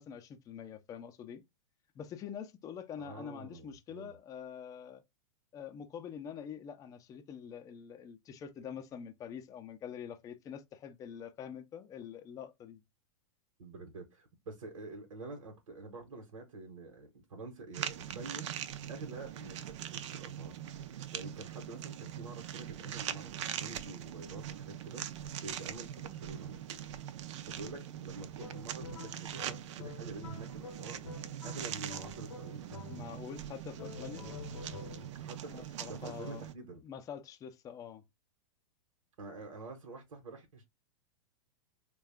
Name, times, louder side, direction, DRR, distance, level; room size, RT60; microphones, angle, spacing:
voice 1, 0.0-1.4 1.9-5.0 5.5-12.8 32.9-34.3 35.5-36.4 36.8-38.0, left 8 dB, 20° left, 0.5 m, -45 dB
voice 2, 3.0-4.1 13.6-18.5 18.9-20.5 21.1-27.1 27.4-32.9 35.1-36.8 39.2-40.7, right 3 dB, 80° right, 1.0 m, -47 dB
sound 1, 17.7-36.5, right 10 dB, 65° right, 0.5 m, -42 dB
sound 2, 28.4-33.3 33.8-35.3, left 5 dB, 85° left, 0.7 m, -49 dB
3.5 x 2.3 x 3.4 m
hypercardioid pair, 130°, 17 cm